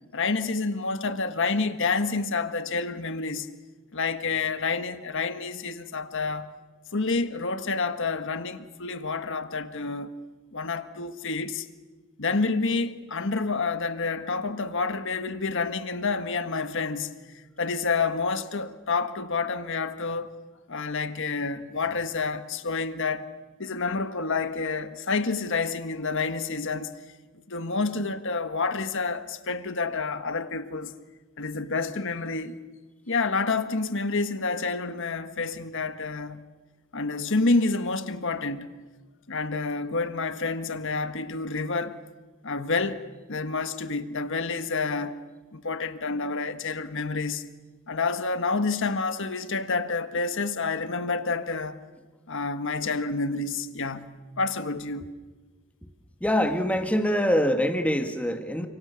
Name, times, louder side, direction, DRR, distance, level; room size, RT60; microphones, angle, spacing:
voice 1, 0.1-3.5 3.9-6.5 6.9-10.1 10.5-11.7 12.2-17.1 17.6-20.3 20.7-23.3 23.6-26.9 27.5-30.9 31.4-32.6 33.1-36.4 36.9-38.7 39.3-42.0 42.4-45.2 45.5-47.4 47.9-51.8 52.3-55.1, left 4 dB, 60° left, 1.5 m, -28 dB
voice 2, 56.2-58.7, equal, 5° left, 1.9 m, -24 dB
29.5 x 26.5 x 7.1 m
head